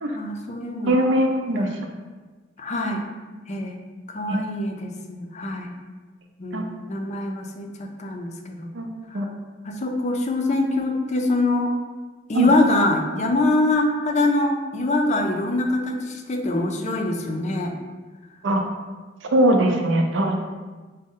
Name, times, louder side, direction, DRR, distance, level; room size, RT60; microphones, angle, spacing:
voice 1, 0.1-1.1 2.6-3.0 3.5-3.8 4.1-5.7 6.4-8.7 9.1-9.2 9.6-11.8 12.3-17.7, left 2 dB, 40° left, 3 dB, 0.5 m, -24 dB
voice 2, 0.9-1.7 4.3-4.5 6.5-6.6 8.7-8.9 9.1-9.3 12.3-12.5 18.4-18.6 19.3-20.4, right 1 dB, 75° right, 3 dB, 0.5 m, -20 dB
5.1 x 2.1 x 3.7 m, 1.3 s
head